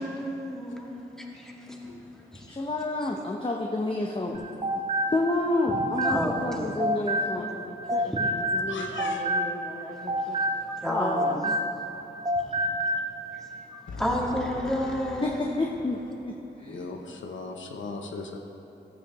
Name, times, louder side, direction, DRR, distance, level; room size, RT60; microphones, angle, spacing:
voice 1, 0.0-2.0 2.3-2.5 4.9-5.0 6.0-6.8 8.0-8.7 9.9-11.5 12.3-12.7 13.3-15.4, equal, 5° left, -2 dB, 1.7 m, -32 dB
voice 2, 2.5-4.4 5.1-10.4 10.9-11.6 15.2-16.3 16.6-16.9, left 2 dB, 25° left, 0 dB, 0.8 m, -30 dB
sound 1, 4.3-7.6 7.9-12.0 12.2-13.1, right 1 dB, 30° right, 0.9 m, -28 dB
voice 3, 8.7-9.5 9.8-10.0 12.7-12.8 13.9-15.8 16.6-18.4, left 4 dB, 80° left, 3 dB, 0.7 m, -39 dB
13.5 x 8.4 x 3.0 m, 2.9 s
cardioid pair, 45°, 19 cm